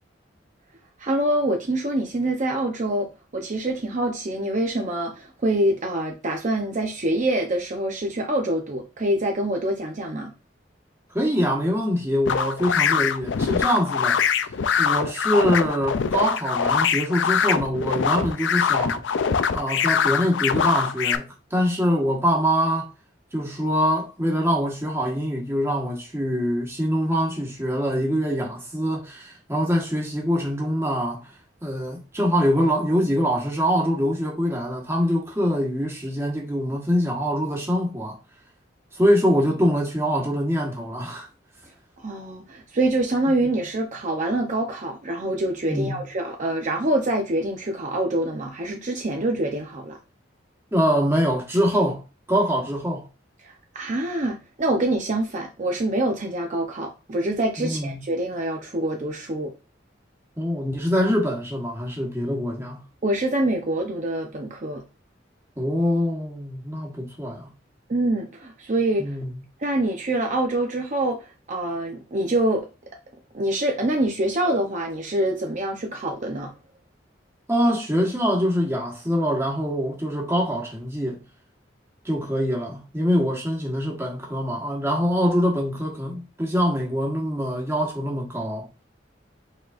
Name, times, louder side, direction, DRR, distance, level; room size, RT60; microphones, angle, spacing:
voice 1, 1.0-10.3 42.0-50.0 53.4-59.5 63.0-64.8 67.9-69.2 69.6-72.7 73.3-76.5, right 1 dB, 45° right, 0.7 m, -25 dB
voice 2, 11.1-14.4 14.8-19.0 19.5-22.9 23.3-31.3 31.6-38.2 38.9-41.3 45.7-46.0 50.7-53.0 57.6-58.0 60.4-62.8 65.6-67.5 69.0-69.3 77.5-81.2 82.0-88.7, equal, 15° right, 1.4 m, -24 dB
sound 1, 12.3-21.2, left 7 dB, 80° left, 0.4 m, -23 dB
5.1 x 4.0 x 2.5 m
head